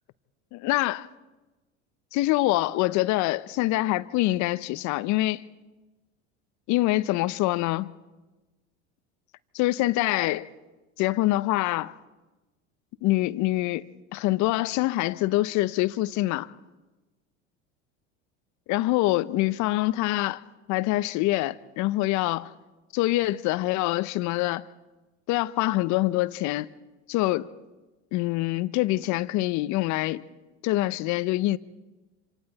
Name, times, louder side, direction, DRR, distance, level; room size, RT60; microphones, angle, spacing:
voice 1, 0.5-1.1 2.1-5.4 6.7-7.9 9.5-10.5 11.0-11.9 13.0-13.8 14.1-16.5 18.7-20.4 20.7-22.5 22.9-24.6 25.3-26.7 27.1-27.5 28.1-30.2 30.6-31.6, left 18 dB, 55° left, 0.9 m, -25 dB
27.0 x 26.5 x 4.2 m
hypercardioid pair, 85°, 34 cm